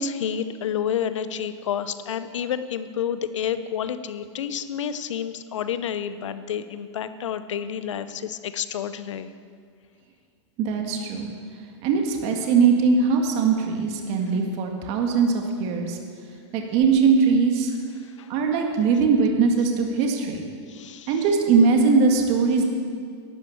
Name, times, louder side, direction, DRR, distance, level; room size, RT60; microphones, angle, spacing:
voice 1, 0.0-9.3 18.2-18.3 20.7-21.2, left 8 dB, 85° left, 12 dB, 0.8 m, -29 dB
voice 2, 10.6-11.3 11.8-16.0 16.5-17.7 18.3-20.4 21.1-22.6, right 5 dB, 45° right, 2 dB, 1.9 m, -21 dB
11.5 x 10.5 x 7.1 m, 2.1 s
hypercardioid pair, 130°, 15 cm